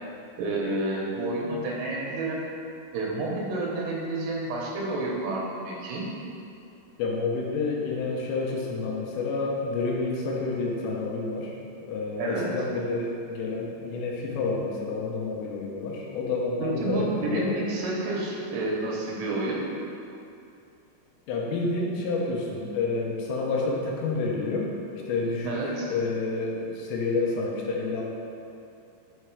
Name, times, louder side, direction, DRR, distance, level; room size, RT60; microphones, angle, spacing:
voice 1, 0.4-2.4 2.9-6.1 12.2-12.5 16.6-19.6 25.4-25.9, right 2 dB, 85° right, -3 dB, 3.5 m, -29 dB
voice 2, 7.0-11.5 11.8-17.6 21.3-24.7 25.1-25.5 25.9-28.0, left 3 dB, 90° left, -2 dB, 3.4 m, -29 dB
8.0 x 3.3 x 4.7 m, 2.7 s
omnidirectional pair, 5.7 m